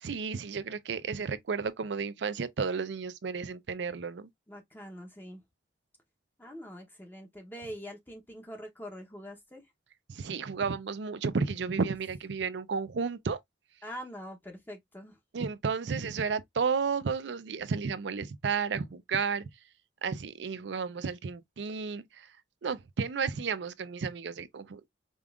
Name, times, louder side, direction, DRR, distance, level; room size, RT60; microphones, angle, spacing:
voice 1, 0.0-4.3 10.1-13.4 15.3-19.4 20.0-22.0 22.6-24.9, right 5 dB, 70° right, 0.5 m, -32 dB
voice 2, 4.5-5.4 6.4-9.6 13.8-15.2, equal, 10° left, 0.8 m, -44 dB
5.1 x 2.4 x 2.3 m
head